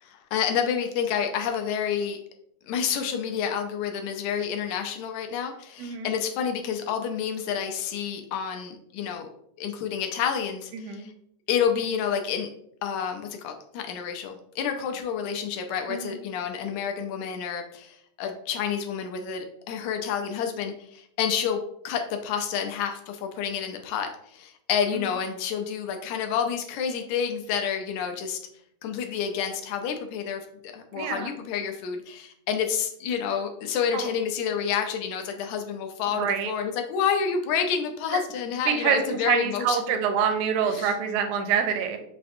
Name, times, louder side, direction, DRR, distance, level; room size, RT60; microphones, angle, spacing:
voice 1, 0.0-2.2 2.7-9.3 9.6-11.1 11.5-12.5 12.8-28.4 28.8-30.5 30.7-39.8 40.7-40.9, left 7 dB, 80° left, 4 dB, 1.7 m, -29 dB
voice 2, 10.7-11.1 15.9-16.2 24.9-25.1 30.9-31.3 33.9-34.1 36.1-36.5 38.1-38.2 38.7-42.0, right 7 dB, 80° right, 5 dB, 1.9 m, -26 dB
5.8 x 2.5 x 2.5 m, 0.70 s
omnidirectional pair, 3.6 m